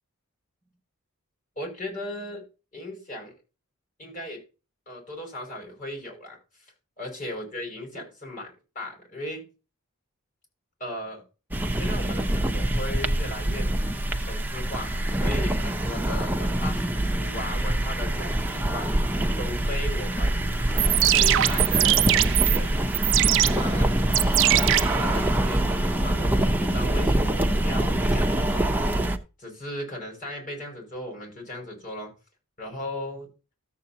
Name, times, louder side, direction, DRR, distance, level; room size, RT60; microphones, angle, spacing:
voice 1, 1.6-2.4 2.7-3.3 4.0-4.4 4.9-9.4 10.8-11.2 11.7-13.7 14.2-24.0 24.5-28.7 29.4-32.1 32.6-33.3, left 1 dB, 40° left, 5.9 m, -37 dB
sound 1, 11.5-29.2, right 1 dB, 10° right, 0.7 m, -25 dB
sound 2, 20.6-25.6, right 14 dB, 60° right, 0.5 m, -23 dB
13.5 x 7.7 x 2.8 m
head